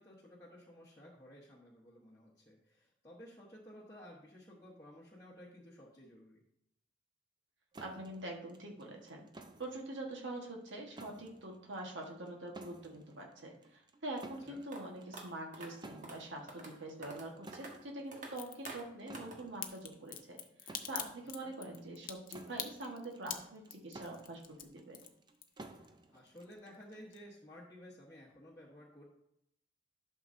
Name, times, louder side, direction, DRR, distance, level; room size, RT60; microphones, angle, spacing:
voice 1, 0.0-6.4 14.5-14.6 21.4-21.5 26.1-29.0, equal, 15° left, -6 dB, 1.2 m, -55 dB
sound 1, 7.7-27.1, right 2 dB, 25° right, 0.6 m, -56 dB
voice 2, 7.8-9.2 9.6-25.0, right 1 dB, 85° right, 0 dB, 1.4 m, -45 dB
sound 2, 14.7-14.8 15.1-15.2 15.5-15.7 16.0-16.2 16.5-16.7 17.0-17.3 17.5-17.7 18.1-18.3 18.7-18.8 19.1-19.4, right 2 dB, 45° right, 1.5 m, -47 dB
Crack, 18.3-18.7 19.6-25.9 26.2-26.8 27.1-27.2, left 10 dB, 50° left, 0.7 m, -44 dB
11.5 x 6.3 x 2.7 m, 0.76 s
head